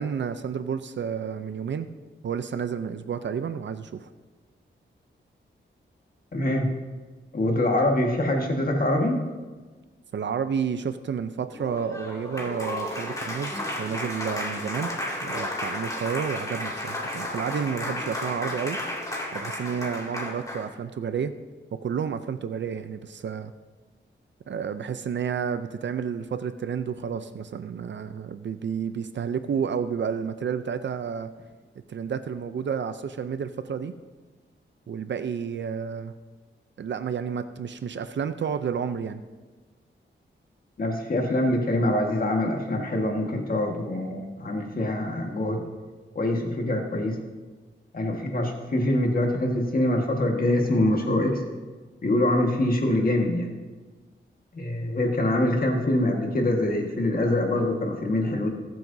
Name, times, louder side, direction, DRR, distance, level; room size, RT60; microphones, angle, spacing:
voice 1, 0.0-1.9 2.2-4.1 10.1-14.9 15.2-18.8 19.3-21.3 21.7-23.5 24.5-31.3 31.9-33.9 34.9-36.1 36.8-39.2, right 7 dB, 65° right, 10 dB, 0.5 m, -30 dB
voice 2, 6.3-6.7 7.3-9.2 40.8-45.6 46.1-47.2 47.9-51.4 52.0-53.5 54.5-58.5, left 1 dB, 45° left, 1 dB, 1.6 m, -24 dB
Applause, 11.5-20.7, left 1 dB, 15° left, 2.5 m, -33 dB
20.0 x 7.7 x 2.7 m, 1.3 s
wide cardioid pair, 100°, 20 cm